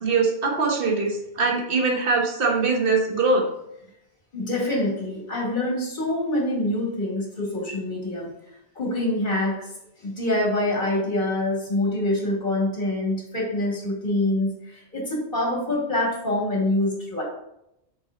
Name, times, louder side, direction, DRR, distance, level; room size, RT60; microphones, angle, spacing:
voice 1, 0.0-3.4, right 3 dB, 55° right, 1 dB, 1.5 m, -22 dB
voice 2, 4.3-8.3 8.8-9.7 10.0-17.2, left 1 dB, 45° left, -3 dB, 2.7 m, -25 dB
6.3 x 6.1 x 3.9 m, 0.82 s
omnidirectional pair, 1.1 m